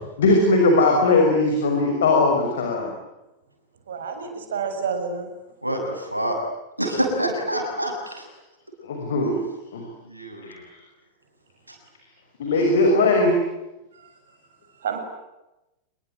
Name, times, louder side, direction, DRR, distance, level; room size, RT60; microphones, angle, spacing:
voice 1, 0.2-2.9 8.8-9.4 9.7-9.8 10.4-10.6 12.4-13.4, left 2 dB, 60° left, 2 dB, 6.3 m, -19 dB
voice 2, 3.9-5.3 14.8-15.0, right 6 dB, 65° right, 6 dB, 6.9 m, -29 dB
voice 3, 5.6-6.4 6.8-8.3 9.2-9.3 10.0-10.6 11.7-11.8, right 1 dB, 85° right, 3 dB, 7.2 m, -27 dB
27.0 x 23.0 x 9.3 m, 0.96 s
figure-of-eight pair, 90°, 0 cm